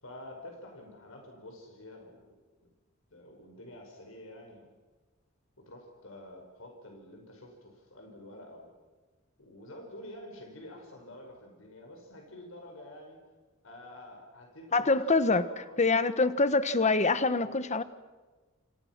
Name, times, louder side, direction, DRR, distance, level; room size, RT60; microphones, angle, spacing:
voice 1, 0.0-2.7 3.1-4.7 5.7-8.7 9.4-13.2 13.6-16.0 16.6-16.7 17.4-17.6, left 1 dB, 80° left, 2 dB, 5.6 m, -48 dB
voice 2, 14.7-15.4 15.8-17.8, left 3 dB, 35° left, 13 dB, 1.2 m, -25 dB
28.5 x 27.0 x 6.1 m, 1.3 s
head